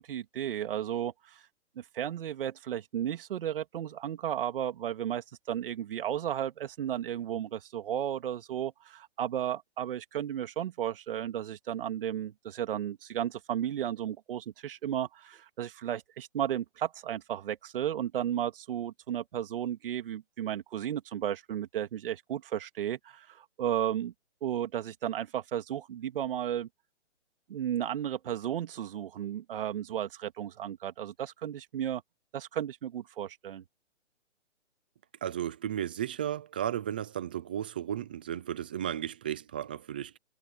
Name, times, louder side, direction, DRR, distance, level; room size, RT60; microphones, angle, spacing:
voice 1, 0.0-1.4 1.8-24.1 24.4-26.7 27.5-32.0 32.3-33.6, right 10 dB, 45° right, 2.5 m, -34 dB
voice 2, 35.2-40.2, right 10 dB, 10° right, 0.4 m, -34 dB
hypercardioid pair, 145°, 37 cm